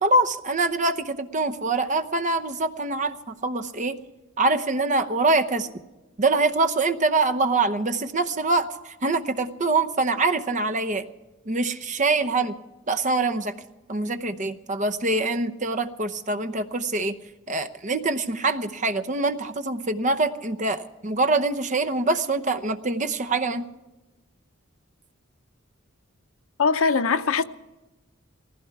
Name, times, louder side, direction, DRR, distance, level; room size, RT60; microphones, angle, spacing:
voice 1, 0.0-4.0 4.4-5.7 6.2-11.1 11.5-12.5 12.9-13.5 13.9-17.2 17.5-23.7, right 3 dB, 35° right, 0.8 m, -24 dB
voice 2, 26.6-27.4, left 5 dB, 80° left, 0.7 m, -21 dB
18.5 x 15.5 x 4.7 m
head